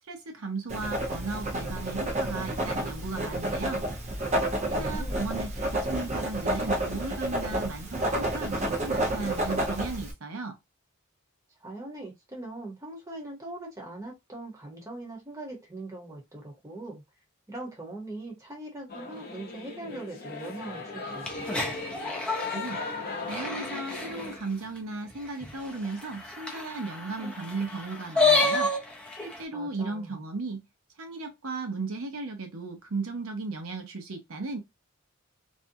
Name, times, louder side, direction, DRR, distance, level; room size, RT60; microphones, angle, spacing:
voice 1, 0.1-3.8 4.7-10.6 22.5-22.8 23.3-28.7 29.2-30.6 31.0-34.6, right 3 dB, 75° right, 0.7 m, -36 dB
Writing, 0.7-10.1, right 1 dB, 35° right, 0.7 m, -30 dB
voice 2, 4.6-5.3 11.6-17.0 17.5-21.7 29.5-30.1, right 2 dB, 15° right, 0.9 m, -41 dB
Singing / Musical instrument, 18.9-24.4, left 3 dB, 45° left, 0.7 m, -38 dB
sound 1, 21.2-24.3 24.8-24.9 25.1-25.2 25.4-29.4, left 3 dB, 5° left, 0.5 m, -29 dB
2.6 x 2.3 x 2.6 m
head